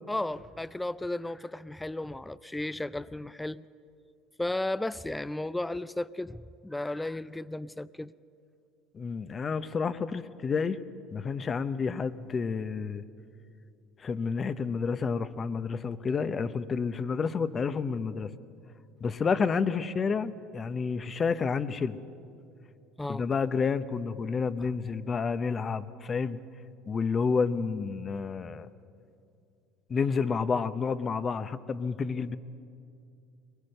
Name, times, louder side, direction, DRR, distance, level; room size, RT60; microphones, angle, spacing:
voice 1, 0.1-3.6 4.4-8.1 23.0-23.2, left 1 dB, 10° left, 0.4 m, -34 dB
voice 2, 8.9-10.8 11.1-13.0 14.0-18.3 19.0-22.0 23.1-26.4 26.9-28.7 29.9-32.4, left 5 dB, 35° left, 0.8 m, -30 dB
22.5 x 20.0 x 6.6 m
supercardioid pair, 90°, 0 cm